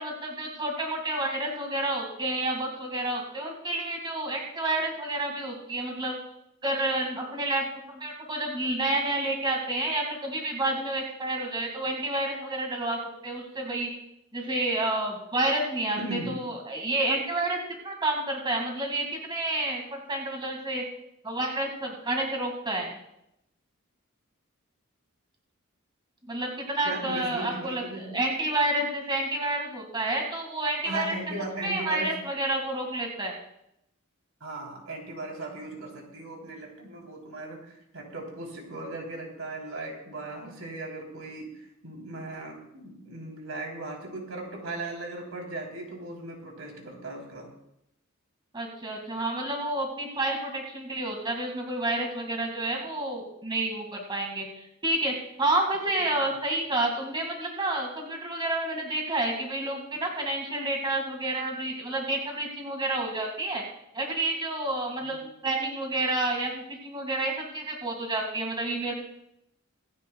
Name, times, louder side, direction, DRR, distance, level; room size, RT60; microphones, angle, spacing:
voice 1, 0.0-6.2 6.6-13.9 14.3-17.6 17.8-20.8 21.2-23.0 26.3-31.1 31.6-33.4 48.5-63.6 63.9-68.9, right 2 dB, 20° right, 1 dB, 2.0 m, -29 dB
voice 2, 15.9-16.3 26.8-28.2 30.8-32.1 34.4-47.5 56.2-56.3 65.0-65.2, right 2 dB, 85° right, 0 dB, 3.4 m, -38 dB
25.0 x 9.9 x 2.3 m, 0.82 s
head